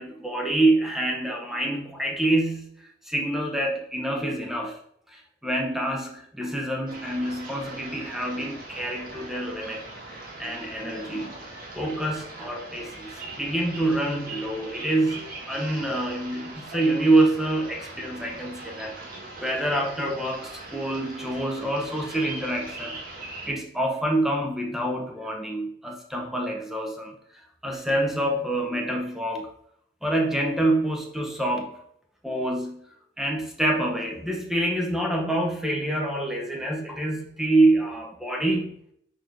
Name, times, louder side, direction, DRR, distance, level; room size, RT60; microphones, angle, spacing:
voice 1, 0.0-2.7 3.1-4.8 5.1-9.8 10.4-13.1 13.4-18.9 19.4-23.0 23.5-27.1 27.6-29.5 30.0-31.8 32.2-32.8 33.2-38.7, right 1 dB, ahead, 1 dB, 0.8 m, -26 dB
sound 1, 6.9-23.5, right 2 dB, 50° right, 1.8 m, -41 dB
5.1 x 4.3 x 4.6 m, 0.69 s
head